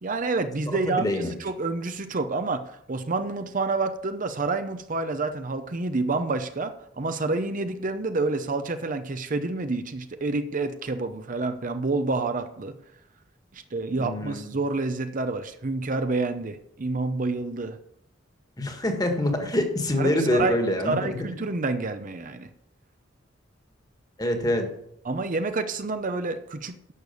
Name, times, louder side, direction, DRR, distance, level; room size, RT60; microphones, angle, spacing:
voice 1, 0.0-12.7 13.5-17.8 20.0-20.6 20.8-22.5 25.0-26.9, right 3 dB, 45° right, 9 dB, 0.7 m, -28 dB
voice 2, 0.7-1.3 14.0-14.5 18.6-21.2 24.2-24.7, left 1 dB, 20° left, 5 dB, 1.7 m, -25 dB
11.0 x 6.8 x 6.8 m, 0.76 s
head